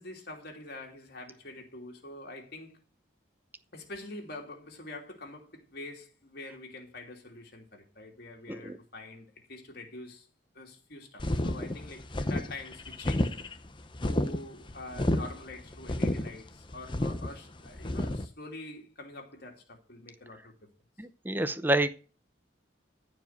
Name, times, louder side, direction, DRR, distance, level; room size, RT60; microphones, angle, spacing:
voice 1, 0.0-2.8 3.7-10.3 10.5-13.3 14.0-20.5, left 2 dB, 55° left, 2.7 m, -45 dB
sound 1, 11.2-18.3, left 1 dB, 25° left, 0.8 m, -31 dB
voice 2, 21.0-21.9, right 1 dB, 10° right, 0.7 m, -28 dB
14.5 x 5.1 x 8.0 m
head